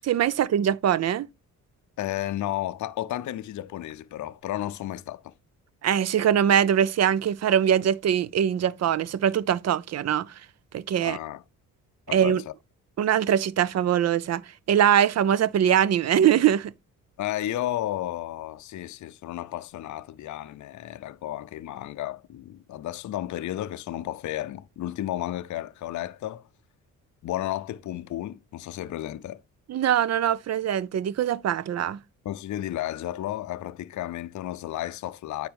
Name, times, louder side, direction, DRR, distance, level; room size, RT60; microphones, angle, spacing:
voice 1, 0.1-1.3 5.8-10.3 10.7-11.2 12.1-12.4 13.0-14.4 14.7-16.7 29.7-32.0, right 9 dB, 50° right, 0.5 m, -22 dB
voice 2, 2.0-5.3 11.0-11.4 12.1-12.5 17.2-26.5 27.2-29.4 32.2-35.5, left 13 dB, 55° left, 0.5 m, -33 dB
9.4 x 4.1 x 3.4 m
cardioid pair, 70°, 34 cm